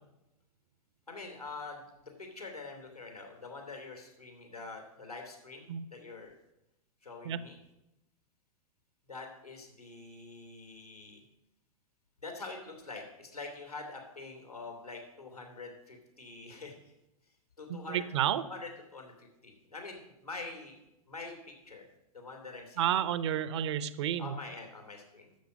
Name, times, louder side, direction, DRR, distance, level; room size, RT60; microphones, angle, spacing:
voice 1, 1.1-6.3 7.0-7.6 9.1-11.2 12.2-16.9 17.6-18.0 18.4-20.7 21.1-21.9 22.1-23.1 24.2-25.4, left 3 dB, 90° left, 3 dB, 2.9 m, -45 dB
voice 2, 17.7-18.4 22.8-24.4, right 10 dB, 50° right, 15 dB, 0.6 m, -31 dB
11.5 x 7.3 x 5.2 m, 0.88 s
figure-of-eight pair, 100°, 19 cm